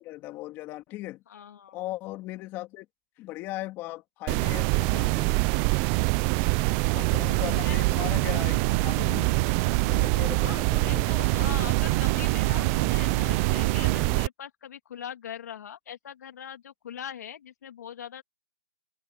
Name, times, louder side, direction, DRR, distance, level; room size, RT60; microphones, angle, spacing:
voice 1, 0.0-1.2 1.7-2.9 3.2-5.4 6.9-9.3 9.9-11.2, left 17 dB, 20° left, 2.8 m, -38 dB
voice 2, 1.3-1.8 7.0-8.1 10.4-18.2, left 9 dB, 50° left, 2.3 m, -42 dB
sound 1, 4.3-14.3, right 28 dB, 15° right, 0.3 m, -24 dB
sound 2, 7.4-10.1 11.2-14.0, right 10 dB, 45° right, 0.8 m, -35 dB
hypercardioid pair, 160°, 11 cm